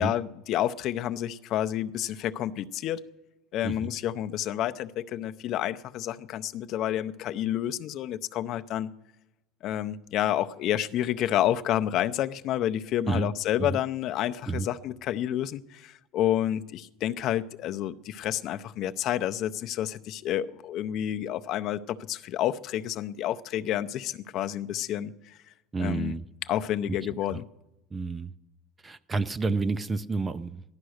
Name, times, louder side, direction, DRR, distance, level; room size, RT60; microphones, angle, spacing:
voice 1, 0.0-3.0 3.5-8.9 9.6-25.4 25.8-26.1 26.5-27.5, left 12 dB, 45° left, 10 dB, 0.6 m, -29 dB
voice 2, 25.7-26.3 26.9-27.0 27.3-27.4 27.9-28.3 28.8-30.6, right 3 dB, 15° right, 15 dB, 0.4 m, -30 dB
15.0 x 11.5 x 6.5 m, 0.94 s
cardioid pair, 145°, 0 cm